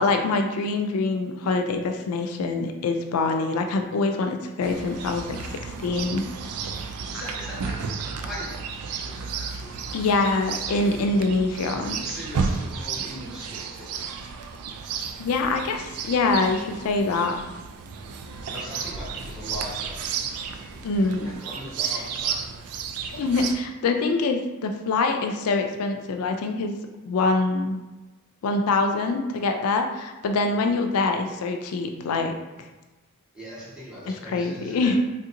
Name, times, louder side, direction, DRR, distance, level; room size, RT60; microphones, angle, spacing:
voice 1, 0.0-6.2 9.9-12.0 15.2-17.4 20.8-21.3 21.9-22.0 23.1-26.8 27.1-27.8 28.4-32.7 34.1-35.0, left 3 dB, 85° left, 5 dB, 0.4 m, -25 dB
Chirp tweet, 4.6-23.5, right 5 dB, 85° right, 0.3 m, -33 dB
voice 2, 7.1-7.8 8.2-9.8 10.7-10.8 12.0-14.0 18.5-20.0 20.7-22.4 33.3-34.9, equal, 5° right, -10 dB, 1.1 m, -39 dB
3.4 x 2.8 x 2.5 m, 1.1 s
head